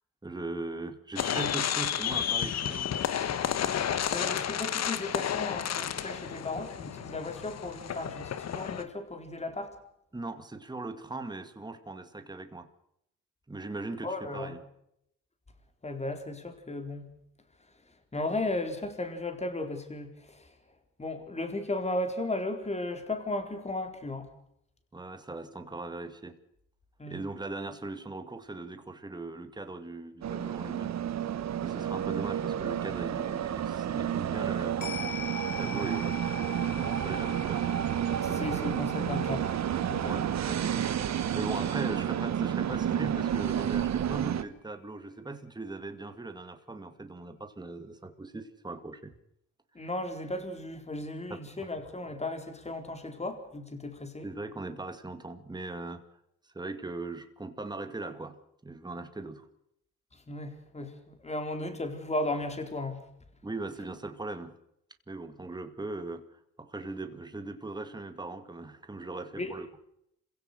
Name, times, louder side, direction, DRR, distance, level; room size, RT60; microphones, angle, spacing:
voice 1, 0.2-2.9 10.1-12.7 13.5-14.6 24.9-26.4 27.1-36.3 36.6-37.7 38.0-38.6 40.0-40.8 41.3-49.1 49.8-49.9 51.3-51.4 54.2-56.0 56.4-58.4 58.6-59.5 63.4-64.5 65.1-69.7, right 2 dB, 15° right, 8 dB, 2.2 m, -39 dB
sound 1, 1.1-8.8, left 9 dB, 60° left, 1.5 m, -31 dB
voice 2, 4.1-9.7 14.0-14.6 15.8-17.1 18.1-20.5 21.0-24.3 27.0-27.2 38.2-39.5 39.9-40.3 49.7-54.3 60.3-63.0 69.4-69.5, left 2 dB, 20° left, 7 dB, 4.2 m, -35 dB
sound 2, 30.2-44.4, right 9 dB, 60° right, 1.5 m, -30 dB
sound 3, 34.8-43.4 43.7-43.8, left 7 dB, 90° left, 6.7 m, -45 dB
27.0 x 16.5 x 6.6 m, 0.76 s
cardioid pair, 90°, 30 cm